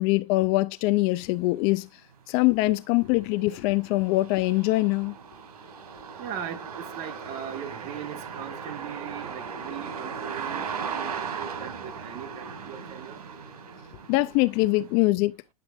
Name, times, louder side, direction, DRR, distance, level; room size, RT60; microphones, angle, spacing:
voice 1, 0.0-1.9 2.3-5.2 14.1-15.4, left 20 dB, 35° left, 0.3 m, -23 dB
sound 1, 1.6-1.7 2.1-15.0, right 6 dB, 85° right, 1.8 m, -38 dB
voice 2, 6.2-13.2, right 9 dB, 35° right, 1.4 m, -39 dB
9.8 x 7.0 x 2.4 m
hypercardioid pair, 140°, 19 cm